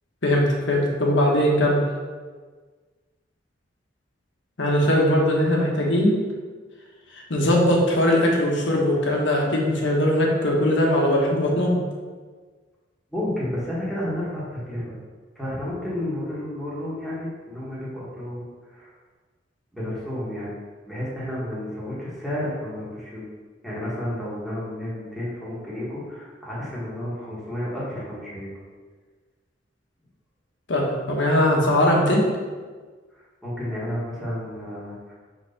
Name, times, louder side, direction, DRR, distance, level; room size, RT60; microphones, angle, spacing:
voice 1, 0.2-1.8 4.6-6.2 7.3-11.8 30.7-32.3, left 1 dB, 75° left, -1 dB, 1.2 m, -20 dB
voice 2, 13.1-14.9 15.3-18.9 19.7-20.5 20.8-23.2 23.6-28.5 33.1-35.1, left 1 dB, ahead, -8 dB, 1.6 m, -31 dB
4.5 x 4.0 x 5.7 m, 1.5 s
head